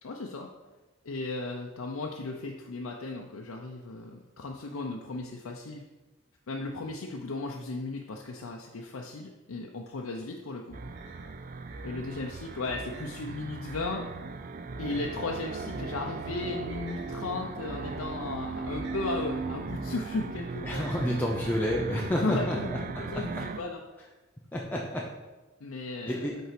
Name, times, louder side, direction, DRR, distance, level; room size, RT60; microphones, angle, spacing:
voice 1, 0.0-0.5 1.0-5.8 6.5-10.8 11.8-14.3 14.8-20.8 22.2-23.8 25.6-26.2, left 3 dB, 85° left, 0 dB, 0.6 m, -36 dB
sound 1, 10.7-23.6, right 4 dB, 40° right, 0.4 m, -38 dB
sound 2, 10.7-22.4, right 1 dB, 60° right, 1.1 m, -48 dB
voice 2, 20.6-22.8 23.1-23.2 24.5-25.0 26.1-26.4, equal, 10° left, -3 dB, 0.6 m, -30 dB
5.6 x 4.6 x 5.9 m, 1.1 s
head